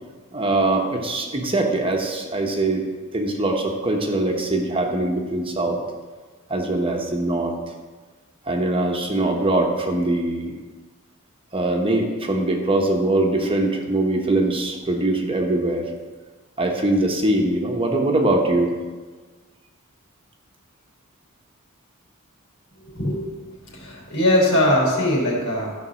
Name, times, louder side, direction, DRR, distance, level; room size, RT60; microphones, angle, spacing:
voice 1, 0.3-2.8 3.1-5.8 6.5-7.5 8.5-10.5 11.5-15.9 16.6-18.7, right 2 dB, 25° right, 2 dB, 1.1 m, -22 dB
voice 2, 22.8-23.2 23.7-25.7, left 1 dB, 75° left, -2 dB, 3.9 m, -21 dB
13.0 x 5.4 x 6.3 m, 1.4 s
head